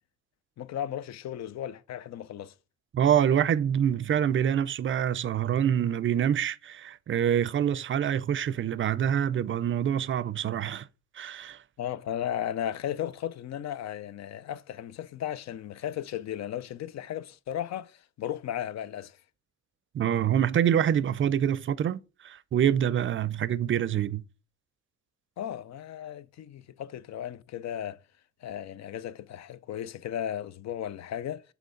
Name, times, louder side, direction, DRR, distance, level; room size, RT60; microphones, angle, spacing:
voice 1, 0.6-2.5 11.8-19.2 25.4-28.0 28.4-31.4, left 10 dB, 60° left, 0.6 m, -35 dB
voice 2, 2.9-10.9 11.1-11.6 19.9-24.2, right 9 dB, 40° right, 0.5 m, -26 dB
7.7 x 3.4 x 5.1 m
cardioid pair, 90°, 30 cm